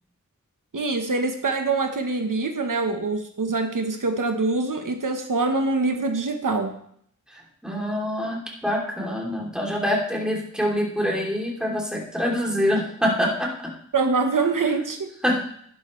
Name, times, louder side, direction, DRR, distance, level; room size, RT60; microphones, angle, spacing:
voice 1, 0.7-6.7 13.9-15.1, right 3 dB, 85° right, 5 dB, 1.1 m, -24 dB
voice 2, 7.6-13.7 15.2-15.4, equal, ahead, -2 dB, 2.9 m, -25 dB
12.0 x 11.0 x 3.2 m, 0.66 s
wide cardioid pair, 65°, 31 cm